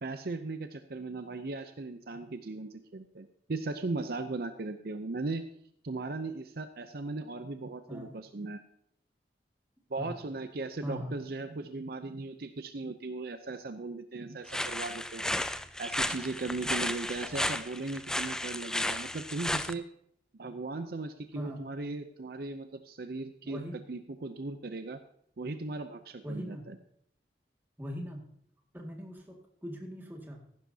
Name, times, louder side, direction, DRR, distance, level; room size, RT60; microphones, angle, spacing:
voice 1, 0.0-5.4 5.8-8.6 9.9-15.2 15.8-19.8 20.3-23.6 23.9-25.0 25.4-26.8, right 3 dB, 55° right, 9 dB, 0.6 m, -37 dB
voice 2, 10.8-11.1 21.3-21.6 23.4-23.8 26.2-26.6 27.8-28.2 28.7-30.6, equal, 10° right, 0 dB, 2.0 m, -40 dB
sound 1, 14.5-19.7, left 1 dB, 5° left, 0.3 m, -33 dB
15.0 x 11.5 x 2.8 m, 0.69 s
head